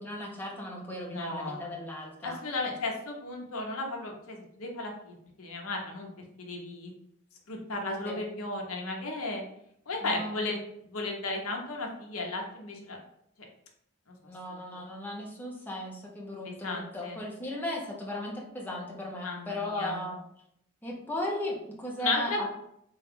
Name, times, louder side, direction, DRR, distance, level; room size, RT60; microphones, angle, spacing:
voice 1, 0.0-2.4 8.1-8.2 10.0-10.6 14.3-20.2 20.8-22.5, left 1 dB, 10° left, -3 dB, 0.6 m, -36 dB
voice 2, 1.1-1.6 2.2-6.1 6.4-6.9 7.5-9.4 9.9-10.6 10.9-13.0 16.4-17.2 19.2-20.0 22.0-22.5, left 2 dB, 75° left, 1 dB, 0.8 m, -34 dB
3.9 x 2.3 x 3.5 m, 0.73 s
head